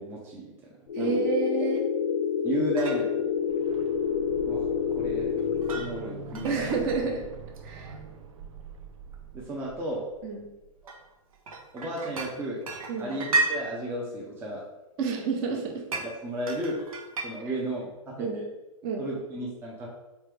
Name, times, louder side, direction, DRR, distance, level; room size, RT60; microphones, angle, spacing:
voice 1, 0.0-1.3 2.4-3.3 4.5-4.6 5.0-5.3 5.7-6.9 9.3-10.1 11.7-12.6 13.0-14.6 15.9-16.8 17.2-18.5 19.0-19.9, right 1 dB, 15° right, -3 dB, 0.6 m, -34 dB
sound 1, 0.9-5.9, left 7 dB, 85° left, 0.4 m, -28 dB
voice 2, 0.9-1.8 6.4-7.2 7.6-7.9 10.2-10.5 12.9-13.1 15.0-15.8 17.5-17.6 18.2-18.4 18.8-19.1, right 4 dB, 35° right, 1 dB, 0.9 m, -29 dB
sound 2, 2.5-2.6 2.8-3.1 5.4-5.9 6.3-7.0 7.5-8.0 9.1-9.4 9.9-10.0 10.9-12.3 12.6-13.5 15.9-16.1 16.5-17.3, right 3 dB, 80° right, 1.0 m, -32 dB
sound 3, 3.2-11.0 11.3-11.4, right 4 dB, 65° right, 0.5 m, -44 dB
3.4 x 3.2 x 3.3 m, 1.0 s
hypercardioid pair, 125°, 18 cm